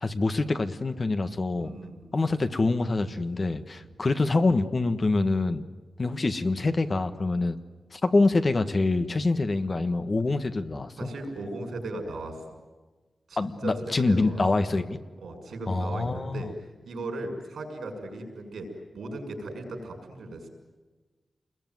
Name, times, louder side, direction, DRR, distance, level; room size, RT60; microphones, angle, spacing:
voice 1, 0.0-1.7 2.1-5.6 6.0-7.6 7.9-11.1 13.4-15.0 15.7-16.5, left 3 dB, 40° left, 9 dB, 1.4 m, -25 dB
voice 2, 1.6-2.1 3.8-3.9 11.0-12.4 13.3-14.4 15.2-16.5 16.9-18.7 18.9-20.5, right 2 dB, 90° right, 3 dB, 6.5 m, -37 dB
28.5 x 21.5 x 9.5 m, 1.3 s
wide cardioid pair, 95°, 0 cm